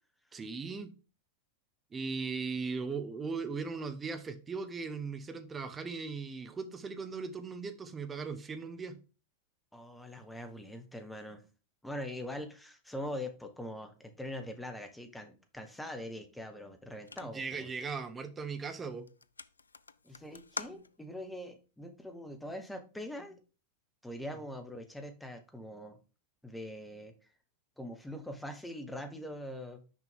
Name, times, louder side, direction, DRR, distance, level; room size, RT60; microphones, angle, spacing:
voice 1, 0.3-0.9 1.9-9.0 17.2-19.1, right 4 dB, 20° right, 8 dB, 0.9 m, -38 dB
voice 2, 9.7-11.4 11.8-17.7 20.0-23.4 24.0-26.0 26.4-27.1 27.8-29.9, left 1 dB, 5° left, 6 dB, 1.1 m, -43 dB
sound 1, 17.0-17.5 18.1-18.4 18.7-18.8 19.1-21.3, left 4 dB, 75° left, 0.3 m, -45 dB
6.3 x 5.1 x 3.5 m, 0.34 s
figure-of-eight pair, 90°, 0 cm